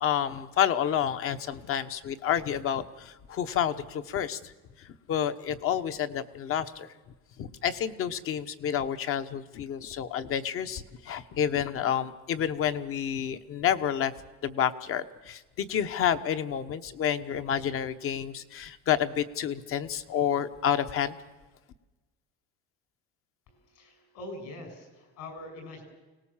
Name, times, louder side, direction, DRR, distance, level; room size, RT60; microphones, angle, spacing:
voice 1, 0.0-4.5 4.8-6.9 7.4-14.1 14.4-21.1, left 9 dB, 45° left, 10 dB, 1.1 m, -29 dB
voice 2, 23.5-25.8, left 2 dB, 70° left, 4 dB, 6.9 m, -43 dB
24.5 x 18.5 x 7.3 m, 1.2 s
cardioid pair, 150°, 30 cm